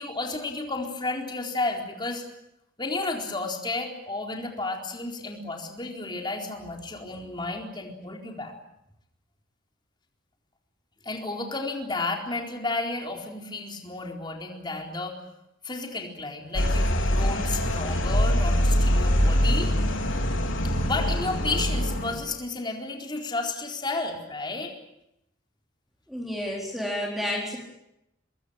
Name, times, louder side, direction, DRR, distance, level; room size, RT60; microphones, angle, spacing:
voice 1, 0.0-2.2 2.8-8.5 11.0-15.2 15.6-19.7 20.6-24.7, left 2 dB, 25° left, 1 dB, 4.2 m, -32 dB
sound 1, 16.5-22.1, equal, 75° left, 4.1 m, -23 dB
voice 2, 26.1-27.6, left 1 dB, ahead, -2 dB, 4.1 m, -30 dB
24.5 x 22.0 x 8.7 m, 0.83 s
head